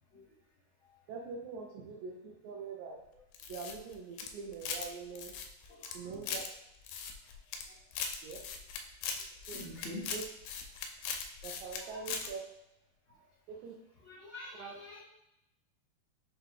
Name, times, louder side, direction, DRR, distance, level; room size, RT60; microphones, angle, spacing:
voice 1, 1.1-3.0 3.5-5.3 5.9-6.4 8.2-8.4 9.5-9.6 10.1-10.2 11.4-12.4 13.5-13.8 14.6-14.7, right 5 dB, 75° right, -1 dB, 1.8 m, -43 dB
sound 1, 3.3-4.9 5.2-6.5 6.9-7.6 7.9-11.8 12.1-12.3, left 6 dB, 85° left, 2.1 m, -39 dB
voice 2, 9.6-10.0 14.0-15.0, left 2 dB, 55° left, -10 dB, 1.5 m, -45 dB
5.8 x 2.2 x 3.6 m, 0.82 s
omnidirectional pair, 3.6 m